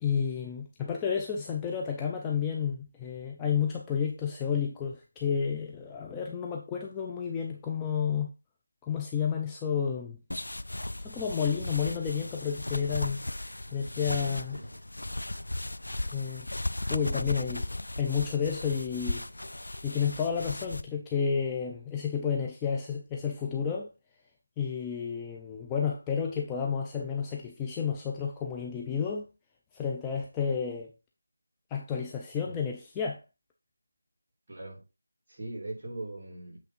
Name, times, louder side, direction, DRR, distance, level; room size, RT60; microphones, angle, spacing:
voice 1, 0.0-8.3 8.8-10.2 11.0-13.2 13.7-14.6 16.1-16.5 16.9-17.7 18.0-23.9 24.6-29.3 29.7-30.9 31.7-33.2, left 7 dB, 10° left, 0.5 m, -31 dB
sound 1, 10.3-20.8, left 1 dB, 80° left, 0.4 m, -36 dB
voice 2, 14.1-14.8 32.4-32.7 34.5-34.8 35.3-36.6, right 2 dB, 35° right, 3.0 m, -41 dB
8.0 x 3.4 x 4.3 m
figure-of-eight pair, 170°, 0 cm